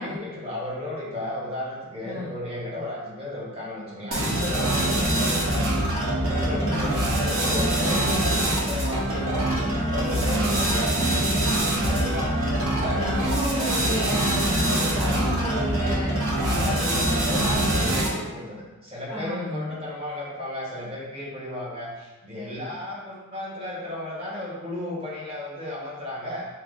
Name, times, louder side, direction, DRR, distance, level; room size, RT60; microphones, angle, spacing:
voice 1, 0.0-5.6 6.2-9.5 9.9-11.1 11.8-12.4 12.7-13.8 15.1-15.3 16.4-26.4, left 1 dB, 25° right, -6 dB, 1.0 m, -34 dB
sound 1, 4.1-18.3, right 1 dB, 65° right, 0.9 m, -24 dB
voice 2, 6.5-7.0 12.8-17.1 19.1-19.7, equal, 10° left, -6 dB, 0.4 m, -32 dB
4.6 x 2.0 x 3.5 m, 1.2 s
head